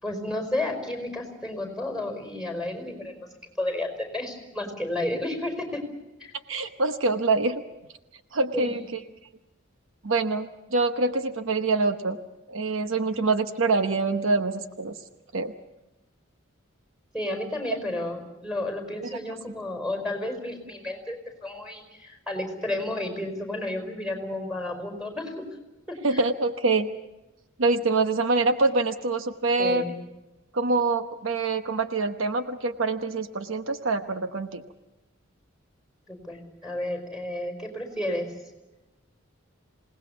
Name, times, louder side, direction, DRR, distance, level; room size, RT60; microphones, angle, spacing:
voice 1, 0.0-3.3 3.6-5.8 6.2-6.3 8.6-8.7 17.1-25.5 25.9-26.2 29.6-29.9 36.1-38.3, left 1 dB, 5° right, 4 dB, 5.1 m, -32 dB
voice 2, 6.5-7.6 8.3-8.8 10.0-12.2 12.5-15.0 15.3-15.5 26.0-26.9 27.6-29.9 30.5-34.6, right 3 dB, 70° right, 8 dB, 1.0 m, -25 dB
27.0 x 19.0 x 7.1 m, 1.0 s
head